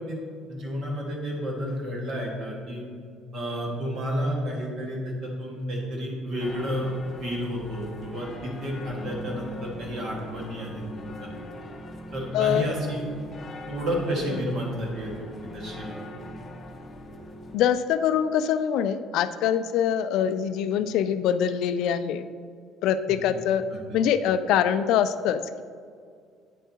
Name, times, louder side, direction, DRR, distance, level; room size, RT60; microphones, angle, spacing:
voice 1, 0.5-2.8 3.3-6.9 7.2-11.3 12.1-13.0 13.7-15.9 23.1-23.2 23.7-23.8, equal, 45° right, -1 dB, 1.7 m, -31 dB
sound 1, 6.4-17.6, left 1 dB, 25° left, 0.7 m, -41 dB
voice 2, 12.3-12.6 17.5-22.2 22.8-23.7 23.9-25.6, left 9 dB, 70° left, 12 dB, 0.3 m, -24 dB
9.2 x 7.0 x 2.9 m, 2.2 s
cardioid pair, 160°, 0 cm